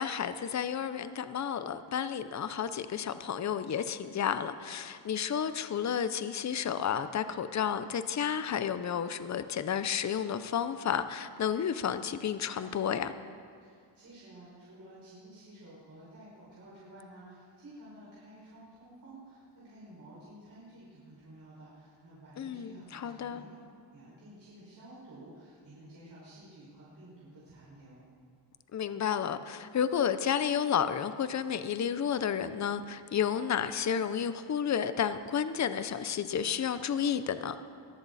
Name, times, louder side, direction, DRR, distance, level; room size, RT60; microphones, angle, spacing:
voice 1, 0.0-13.1 22.4-23.4 28.7-37.6, left 8 dB, 40° left, 11 dB, 0.7 m, -31 dB
voice 2, 13.6-23.5 23.9-28.0, right 1 dB, 50° right, -9 dB, 5.7 m, -52 dB
22.0 x 14.5 x 4.2 m, 2.2 s
cardioid pair, 115°, 44 cm